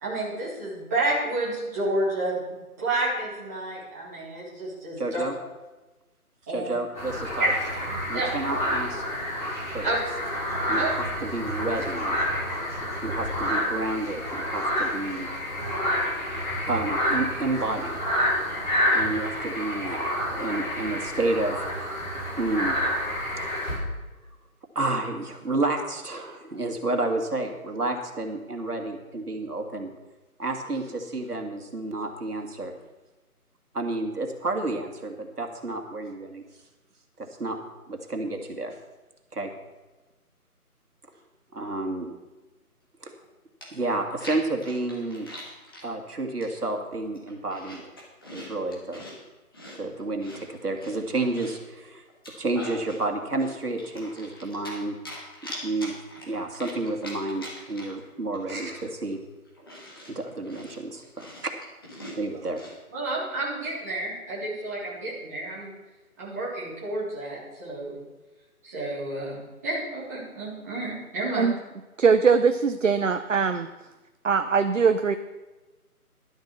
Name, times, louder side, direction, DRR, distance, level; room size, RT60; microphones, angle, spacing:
voice 1, 0.0-5.2 6.5-6.8 7.4-7.5 8.1-8.3 9.8-10.0 10.8-10.9 58.5-58.7 62.9-65.7 66.2-68.0 68.6-71.5, right 2 dB, 10° right, -9 dB, 2.0 m, -30 dB
voice 2, 5.0-5.4 6.5-7.5 8.1-9.0 9.7-9.8 10.7-12.2 12.7-15.3 16.7-18.0 18.9-20.0 20.3-21.9 22.4-22.8 23.3-23.5 23.7-23.9 24.8-29.9 30.4-32.7 33.7-36.4 37.2-37.6 37.9-38.8 39.3-39.5 41.5-42.1 43.0-43.1 43.7-45.3 45.8-47.8 48.3-49.0 49.8-52.0 52.4-54.9 55.6-55.9 56.2-59.2 60.1-61.5 62.2-62.6, right 2 dB, 80° right, 3 dB, 2.3 m, -30 dB
sound 1, 6.9-23.8, equal, 30° left, 4.9 m, -29 dB
Chewing mastication, 43.2-43.3 43.6-45.9 46.4-46.8 47.1-49.2 49.5-51.7 52.1-53.0 53.4-54.8 55.1-58.1 58.3-58.4 58.7-62.8, equal, 15° left, 1.6 m, -42 dB
voice 3, 72.0-73.7 74.2-75.1, right 5 dB, 55° right, 9 dB, 0.6 m, -21 dB
12.0 x 7.9 x 6.2 m, 1.2 s
figure-of-eight pair, 170°, 45 cm